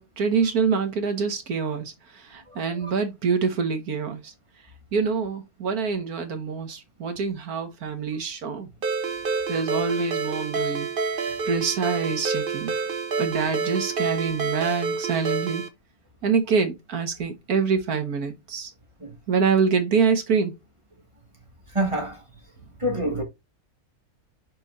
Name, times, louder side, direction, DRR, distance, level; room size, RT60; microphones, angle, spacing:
voice 1, 0.0-4.3 4.9-8.7 9.5-10.9 11.5-12.7 13.2-15.6 16.2-18.7 19.3-20.5, right 5 dB, 85° right, 1.9 m, -25 dB
Ringtone, 8.8-15.7, right 4 dB, 45° right, 1.0 m, -28 dB
voice 2, 21.7-22.2 22.8-23.2, right 1 dB, 20° right, 2.1 m, -26 dB
5.7 x 4.6 x 3.9 m
omnidirectional pair, 1.5 m